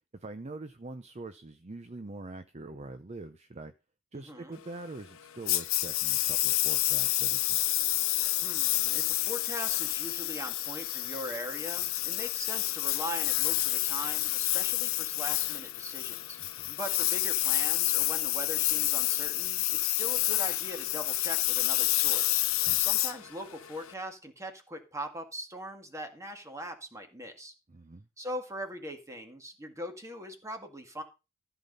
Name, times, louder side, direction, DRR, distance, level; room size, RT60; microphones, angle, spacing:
voice 1, 0.1-3.7 4.1-7.6 16.4-16.5 22.7-22.8 27.7-28.1, right 2 dB, 30° right, 10 dB, 0.6 m, -44 dB
voice 2, 4.1-4.6 8.4-16.4 16.7-22.4 22.8-27.5 28.2-31.0, equal, 15° right, 5 dB, 1.9 m, -41 dB
Engine, 5.5-23.9, left 17 dB, 80° left, 0.8 m, -29 dB
14.0 x 5.9 x 5.4 m, 0.29 s
head